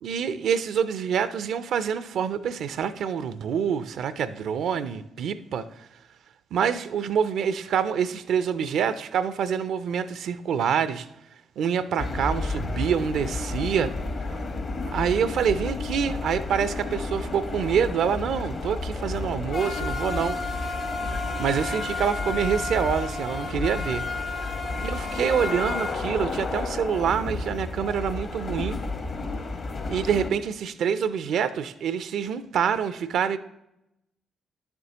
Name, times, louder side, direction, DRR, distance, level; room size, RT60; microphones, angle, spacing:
voice 1, 0.0-5.9 6.5-11.1 11.6-13.9 14.9-20.7 21.4-24.0 24.8-28.8 29.9-33.4, right 7 dB, 65° right, 0.4 m, -26 dB
sound 1, 12.0-30.3, left 3 dB, 50° left, 1.1 m, -31 dB
10.5 x 6.8 x 2.8 m
hypercardioid pair, 40°, 0 cm